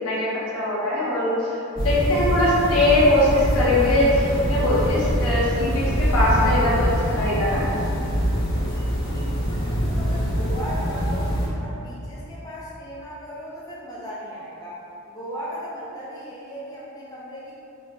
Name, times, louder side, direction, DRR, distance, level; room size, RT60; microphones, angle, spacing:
voice 1, 0.0-1.5 1.8-7.6, left 1 dB, 80° left, -7 dB, 0.9 m, -21 dB
sound 1, 1.8-11.5, equal, 55° left, 1.4 m, -24 dB
sound 2, 2.5-7.9, right 1 dB, 50° right, 0.6 m, -37 dB
voice 2, 9.5-11.3 11.6-17.6, equal, 15° left, -8 dB, 0.5 m, -36 dB
4.5 x 2.7 x 2.2 m, 2.8 s
head